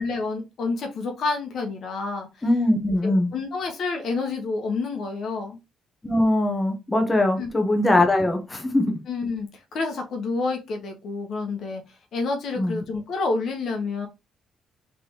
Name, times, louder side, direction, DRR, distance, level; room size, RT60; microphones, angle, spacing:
voice 1, 0.0-2.3 3.0-5.6 7.4-7.5 9.1-11.8 12.1-14.1, left 3 dB, 65° left, 1.0 m, -28 dB
voice 2, 2.4-3.3 6.0-9.0 12.6-12.8, left 1 dB, 20° left, 1.0 m, -21 dB
3.4 x 3.3 x 2.9 m
cardioid pair, 90°, 0 cm